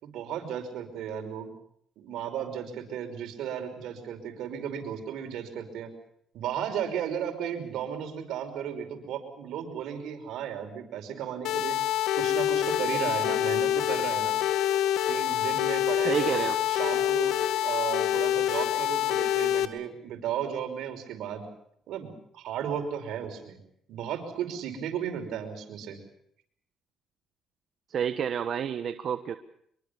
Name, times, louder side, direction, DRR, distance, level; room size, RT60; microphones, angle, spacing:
voice 1, 0.0-1.5 2.0-5.9 6.3-11.8 12.2-14.4 15.1-17.3 17.6-21.5 21.9-23.6 23.9-26.0, right 8 dB, 80° right, 6 dB, 5.6 m, -35 dB
sound 1, 11.4-19.6, left 11 dB, 75° left, 2.0 m, -26 dB
voice 2, 16.0-16.6 27.9-29.4, right 8 dB, 55° right, 10 dB, 1.3 m, -29 dB
25.0 x 23.5 x 7.0 m, 0.69 s
cardioid pair, 100°, 0 cm